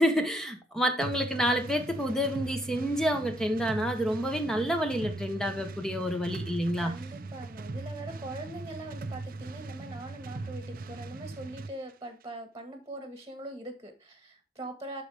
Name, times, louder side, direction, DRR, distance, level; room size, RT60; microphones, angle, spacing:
voice 1, 0.0-6.9, equal, 5° left, 0.9 m, -28 dB
sound 1, 1.0-11.8, right 3 dB, 55° right, 0.6 m, -40 dB
voice 2, 6.8-15.0, right 1 dB, 20° right, 1.5 m, -42 dB
11.0 x 4.1 x 3.4 m
head